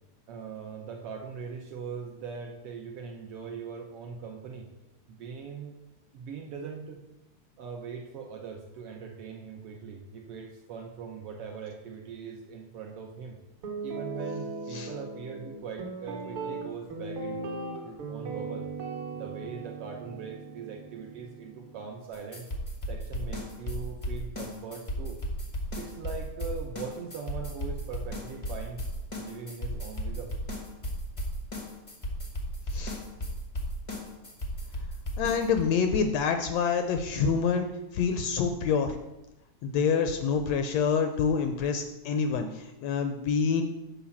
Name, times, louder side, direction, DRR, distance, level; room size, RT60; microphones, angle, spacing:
voice 1, 0.3-4.7 5.1-5.8 6.1-7.0 7.6-13.4 13.8-18.7 19.1-22.4 22.9-25.2 25.8-28.8 29.2-30.4 34.3-34.4, right 6 dB, 70° right, 2 dB, 1.5 m, -41 dB
Guitar, 13.6-21.8, right 3 dB, 55° right, 1.9 m, -38 dB
sound 1, 22.1-35.6, equal, 50° left, 0.3 m, -35 dB
voice 2, 35.2-37.7 37.9-39.0 39.6-43.6, left 6 dB, 75° left, 7 dB, 1.6 m, -27 dB
7.2 x 5.4 x 7.1 m, 0.93 s
omnidirectional pair, 3.4 m